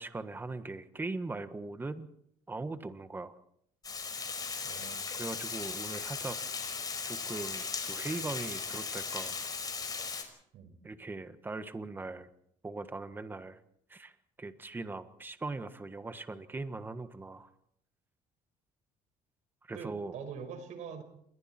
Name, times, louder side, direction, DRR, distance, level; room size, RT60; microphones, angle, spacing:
voice 1, 0.0-2.1 2.5-3.3 5.2-6.4 7.0-9.4 10.8-12.3 12.6-13.6 13.9-14.1 14.4-17.5 19.7-20.1, right 3 dB, 15° right, 10 dB, 1.6 m, -40 dB
Water, 3.8-10.2, left 5 dB, 30° left, 5.2 m, -37 dB
voice 2, 4.6-5.0 10.5-10.8 19.7-21.0, right 6 dB, 65° right, 9 dB, 5.4 m, -43 dB
29.0 x 22.5 x 4.5 m, 0.70 s
cardioid pair, 130°, 14 cm